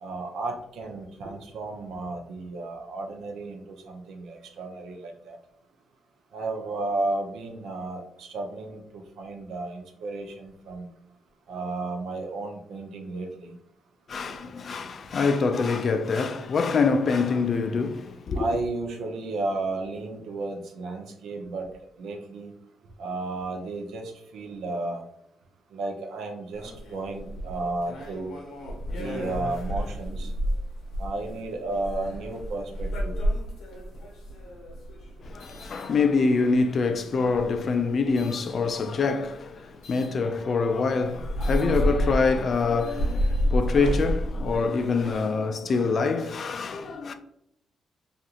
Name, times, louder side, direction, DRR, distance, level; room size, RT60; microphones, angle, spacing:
voice 1, 0.0-5.4 6.3-10.9 11.5-13.5 18.3-21.7 22.0-22.5 23.0-25.0 25.7-28.4 28.9-30.3 31.0-33.2, right 2 dB, 80° right, 0.5 m, -33 dB
voice 2, 14.1-18.5 35.2-47.1, left 4 dB, 50° left, 0.3 m, -25 dB
sound 1, 26.5-36.6 37.2-38.5 39.8-40.1 40.6-40.7 41.0-45.2, equal, 85° left, 0.6 m, -30 dB
2.8 x 2.5 x 2.4 m
cardioid pair, 90°, 0 cm